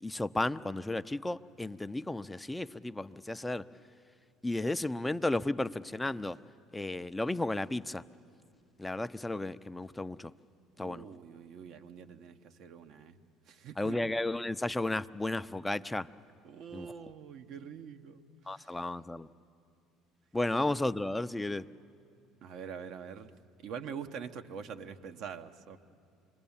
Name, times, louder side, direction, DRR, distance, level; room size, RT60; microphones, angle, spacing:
voice 1, 0.0-3.7 4.4-6.4 6.7-8.0 8.8-10.3 10.8-11.1 13.8-16.1 16.7-16.9 18.5-19.3 20.3-21.7, left 2 dB, 10° left, 12 dB, 0.6 m, -33 dB
voice 2, 10.8-13.2 13.5-14.0 16.4-18.8 22.4-23.3 23.6-25.8, right 7 dB, 60° right, 7 dB, 1.2 m, -45 dB
27.0 x 22.0 x 7.3 m, 2.4 s
hypercardioid pair, 70°, 0 cm